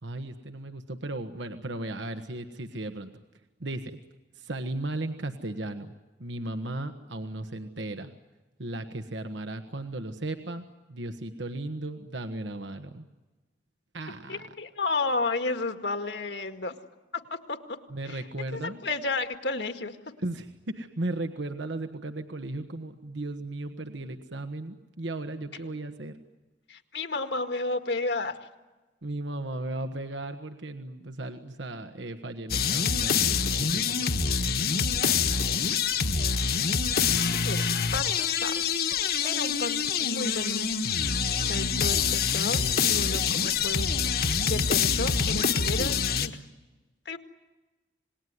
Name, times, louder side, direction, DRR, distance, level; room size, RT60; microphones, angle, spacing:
voice 1, 0.0-3.1 3.6-4.0 4.3-5.9 6.2-8.1 8.6-13.0 13.9-14.4 17.9-18.8 20.2-26.1 29.0-34.0 34.4-35.0, right 2 dB, 80° right, 7 dB, 1.4 m, -36 dB
voice 2, 14.3-16.7 17.1-17.8 18.1-18.2 18.5-20.0 26.7-28.4 35.0-35.2 37.4-37.6 37.9-38.6 39.2-40.7 41.4-43.9 44.5-46.4 47.1-47.2, left 3 dB, 70° left, 7 dB, 2.0 m, -32 dB
sound 1, 32.5-46.3, left 6 dB, 55° left, 1.4 m, -26 dB
27.5 x 20.0 x 9.6 m, 1.2 s
head